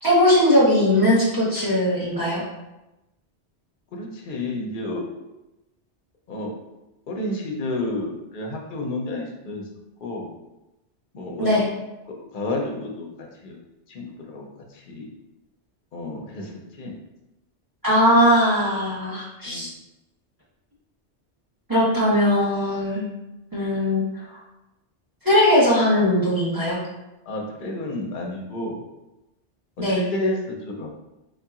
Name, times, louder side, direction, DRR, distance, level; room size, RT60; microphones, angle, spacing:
voice 1, 0.0-2.4 11.4-11.6 17.8-19.7 21.7-23.0 23.5-24.0 24.3-24.4 25.2-26.8 29.8-30.0, left 1 dB, 20° right, -7 dB, 1.1 m, -19 dB
voice 2, 3.9-5.0 6.3-6.5 7.1-9.6 10.0-10.3 11.1-11.6 12.3-13.1 13.4-13.6 13.9-14.5 14.9-15.1 15.9-16.5 16.8-16.9 19.5-19.7 27.3-28.8 29.8-30.9, left 2 dB, 55° left, 0 dB, 0.8 m, -30 dB
4.6 x 2.8 x 2.4 m, 0.97 s
omnidirectional pair, 1.2 m